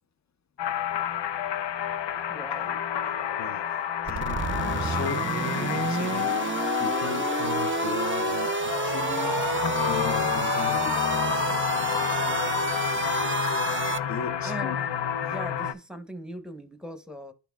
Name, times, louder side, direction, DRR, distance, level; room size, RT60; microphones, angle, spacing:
sound 1, 0.6-15.7, left 9 dB, 85° left, 0.6 m, -29 dB
voice 1, 2.3-2.8 14.4-14.9 15.2-17.3, right 1 dB, ahead, 0.7 m, -39 dB
voice 2, 4.1-6.3 6.8-9.4 9.8-11.2 14.1-14.8, left 6 dB, 45° left, 0.4 m, -37 dB
sound 2, 4.1-14.0, right 5 dB, 30° right, 0.4 m, -30 dB
11.5 x 4.2 x 2.2 m
wide cardioid pair, 135°, 42 cm